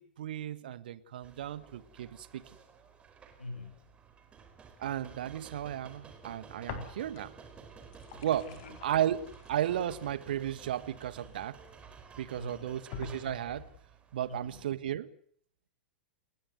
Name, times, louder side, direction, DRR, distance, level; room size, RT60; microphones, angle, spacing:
voice 1, 0.0-2.4 4.8-7.4 8.2-8.6 8.8-11.6 12.2-13.7 14.1-15.1, right 11 dB, 60° right, 1.5 m, -34 dB
sound 1, 1.2-14.6, right 5 dB, 20° right, 4.5 m, -53 dB
voice 2, 3.4-3.9 8.1-8.8 12.3-12.8 14.3-14.6, left 2 dB, 80° left, 6.2 m, -46 dB
sound 2, 6.6-7.4 7.7-11.7 12.3-12.4 12.9-13.8, left 5 dB, 45° left, 4.2 m, -46 dB
30.0 x 17.5 x 8.0 m
figure-of-eight pair, 95°, 6 cm